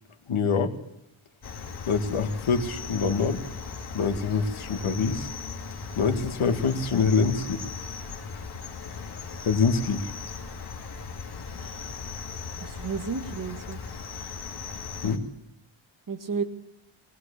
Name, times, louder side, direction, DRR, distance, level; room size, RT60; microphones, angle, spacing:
voice 1, 0.3-0.7 1.9-3.4 3.9-5.3 6.0-7.6 9.5-10.1 15.0-15.2, left 5 dB, 80° left, 7 dB, 2.2 m, -25 dB
Cricket, 1.4-15.2, left 5 dB, 50° left, 2.6 m, -38 dB
voice 2, 11.6-11.9 12.6-13.8 16.1-16.4, right 5 dB, 40° right, 6 dB, 2.1 m, -32 dB
21.0 x 19.5 x 8.4 m, 0.78 s
wide cardioid pair, 175°, 49 cm